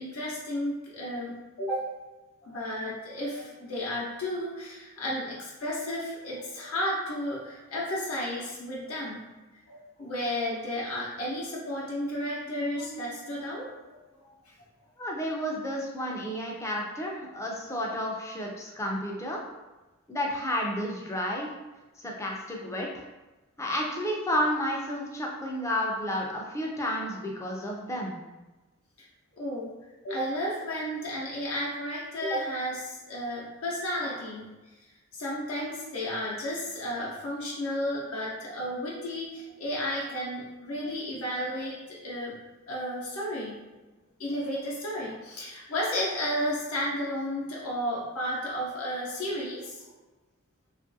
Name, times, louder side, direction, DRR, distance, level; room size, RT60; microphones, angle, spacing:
voice 1, 0.0-1.9 2.4-9.3 9.7-14.0 29.4-29.7 30.0-34.5 35.1-42.4 42.7-43.6 44.2-49.8, equal, 75° left, -5 dB, 0.7 m, -33 dB
voice 2, 15.0-19.4 20.1-21.5 22.0-23.0 23.6-28.2, equal, 15° left, -1 dB, 0.4 m, -31 dB
3.0 x 2.4 x 2.6 m, 1.2 s
head